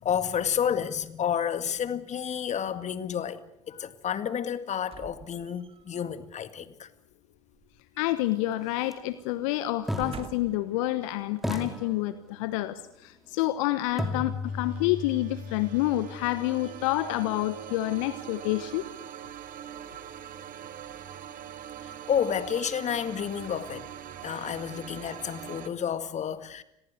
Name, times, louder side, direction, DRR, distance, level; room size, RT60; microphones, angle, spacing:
voice 1, 0.0-3.4 3.7-6.9 21.8-23.9 24.2-26.6, left 8 dB, 40° left, 2.0 m, -30 dB
sound 1, 4.8-6.0 7.5-8.7 9.0-9.2 9.8-10.7 11.4-11.5, right 6 dB, 35° right, 2.6 m, -47 dB
voice 2, 8.0-18.8, left 16 dB, 70° left, 1.2 m, -28 dB
sound 2, 8.8-8.9 9.9-11.0 11.4-12.7 14.0-17.9, left 2 dB, ahead, 4.6 m, -37 dB
sound 3, 14.4-25.7, right 10 dB, 50° right, 2.5 m, -43 dB
30.0 x 22.0 x 6.7 m
figure-of-eight pair, 60°, 18 cm